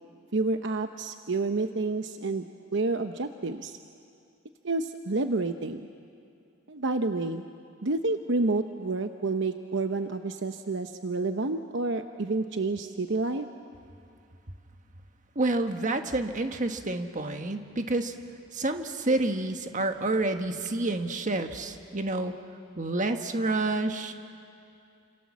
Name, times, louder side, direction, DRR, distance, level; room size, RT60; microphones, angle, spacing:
voice 1, 0.3-2.4 2.7-3.8 4.6-5.9 6.7-7.4 7.8-13.5, right 3 dB, 65° right, 7 dB, 0.9 m, -29 dB
voice 2, 15.3-18.1 18.5-22.3 22.8-24.1, right 2 dB, 40° right, 6 dB, 1.5 m, -28 dB
29.5 x 27.0 x 7.4 m, 2.5 s
head